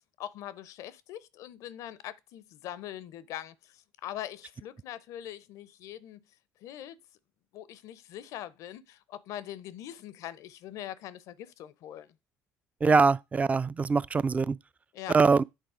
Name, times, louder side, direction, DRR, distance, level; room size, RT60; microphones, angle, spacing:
voice 1, 0.2-6.2 6.6-7.0 7.5-12.1 14.9-15.2, left 12 dB, 70° left, 0.5 m, -42 dB
voice 2, 12.8-14.6 15.1-15.4, right 4 dB, 25° right, 0.3 m, -23 dB
8.2 x 3.7 x 4.9 m
supercardioid pair, 80°, 6 cm